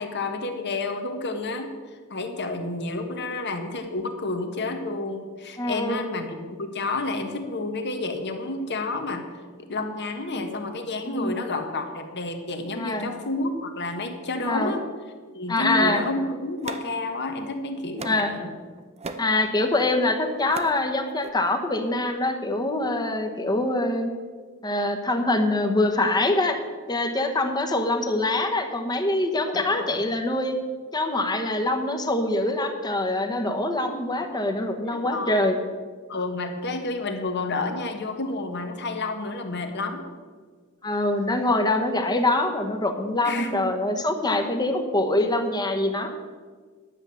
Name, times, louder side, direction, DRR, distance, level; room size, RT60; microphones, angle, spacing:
voice 1, 0.0-1.7 2.1-9.3 9.6-14.8 15.3-18.5 29.5-30.0 34.9-35.5 36.1-40.1 43.2-43.7, left 2 dB, 55° left, 6 dB, 1.4 m, -30 dB
voice 2, 5.6-6.1 10.3-10.4 11.0-11.4 12.7-13.1 14.5-14.7 15.5-16.0 18.0-18.3 19.2-24.1 24.6-26.6 26.9-30.6 30.9-35.6 40.8-46.1, left 2 dB, 20° left, 5 dB, 1.1 m, -24 dB
sound 1, 15.9-17.4 18.0-18.4 18.8-19.3 20.1-20.8 21.1-21.3, right 3 dB, 30° right, 0.6 m, -38 dB
10.5 x 8.0 x 6.9 m, 1.5 s
head